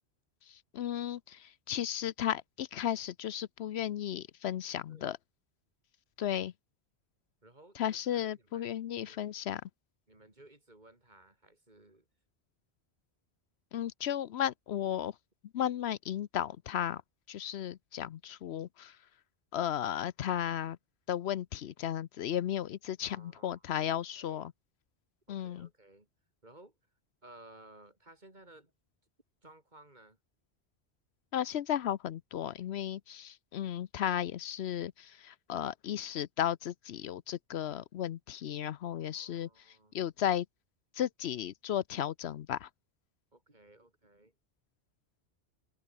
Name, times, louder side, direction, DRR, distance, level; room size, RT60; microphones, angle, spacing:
voice 1, 0.4-5.2 6.2-6.5 7.7-9.6 13.7-15.2 15.5-17.0 17.3-19.0 19.5-20.8 21.1-24.5 25.3-25.7 31.3-40.5 40.9-42.7, left 10 dB, 80° left, 0.9 m, -35 dB
voice 2, 7.4-8.7 9.0-9.2 10.1-12.0 23.0-23.6 24.2-24.4 25.3-26.1 26.4-26.7 27.2-28.7 29.4-30.2 38.9-40.0 43.3-44.3, right 2 dB, 45° right, 4.1 m, -57 dB
omnidirectional pair, 1.1 m